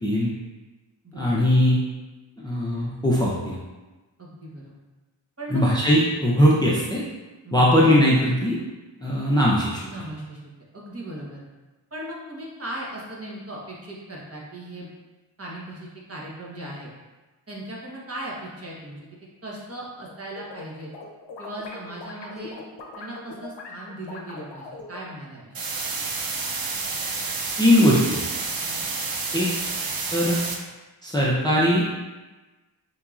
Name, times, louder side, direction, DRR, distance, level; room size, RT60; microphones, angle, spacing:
voice 1, 0.0-0.3 1.2-1.8 2.4-3.6 5.5-7.0 7.5-8.6 9.0-9.8 27.6-28.2 29.3-29.5 30.1-30.4 31.0-31.8, equal, 10° left, -6 dB, 0.6 m, -20 dB
voice 2, 1.0-1.4 4.2-4.7 5.4-5.6 7.4-7.8 9.8-11.4 11.9-14.9 15.4-16.9 17.5-19.0 19.4-20.9 21.4-22.6 23.0-25.5 28.6-28.9, right 1 dB, 30° right, -5 dB, 1.1 m, -38 dB
sound 1, 20.1-20.6 20.9-25.1, left 3 dB, 65° left, 0.7 m, -40 dB
sound 2, 25.5-30.5, right 4 dB, 50° right, 0.6 m, -29 dB
4.6 x 2.8 x 2.4 m, 1.2 s
cardioid pair, 50°, 46 cm